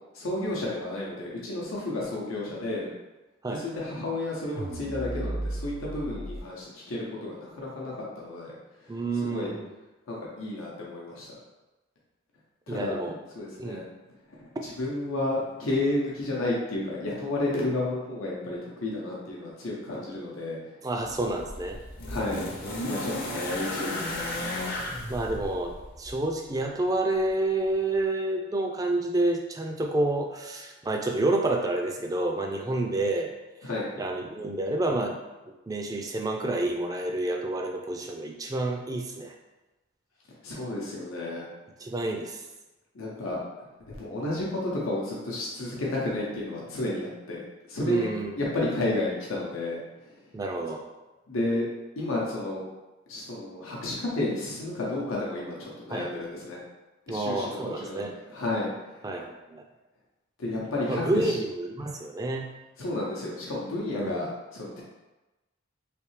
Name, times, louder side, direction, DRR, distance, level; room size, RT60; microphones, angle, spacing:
voice 1, 0.1-2.9 3.5-8.6 8.9-9.5 10.1-11.3 12.7-13.0 13.3-13.8 14.3-20.7 22.1-24.3 32.7-32.8 33.6-33.9 40.4-41.5 42.9-48.1 48.4-50.2 51.3-51.6 52.0-52.6 53.1-56.6 57.1-59.2 60.4-61.4 62.8-64.8, left 2 dB, 85° left, -4 dB, 0.8 m, -32 dB
sound 1, 4.6-6.4, right 1 dB, 85° right, 0.6 m, -34 dB
voice 2, 8.9-9.7 12.7-13.2 13.6-13.8 20.8-21.8 25.1-33.3 34.0-35.2 35.5-39.3 41.8-42.4 47.8-48.3 50.3-50.9 55.9-56.1 57.1-58.1 59.0-59.6 60.9-62.5 63.9-64.3, right 2 dB, 15° right, 2 dB, 0.3 m, -29 dB
sound 2, 21.0-26.2 27.3-27.4, left 1 dB, 45° left, 0.6 m, -34 dB
3.3 x 3.1 x 3.1 m, 1.1 s
head